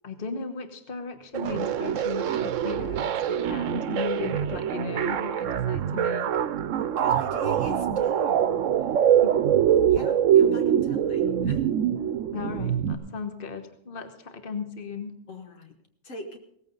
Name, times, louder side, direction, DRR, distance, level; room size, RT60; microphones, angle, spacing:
voice 1, 0.0-6.3 9.2-9.4 12.3-15.1, left 5 dB, 45° left, 7 dB, 1.5 m, -36 dB
sound 1, 1.3-12.9, right 9 dB, 90° right, 1.1 m, -24 dB
voice 2, 6.9-8.5 8.8-9.0 9.9-11.6 15.3-15.7 16.0-16.4, left 2 dB, 80° left, 5 dB, 1.6 m, -41 dB
17.0 x 14.5 x 4.0 m, 0.73 s
omnidirectional pair, 1.3 m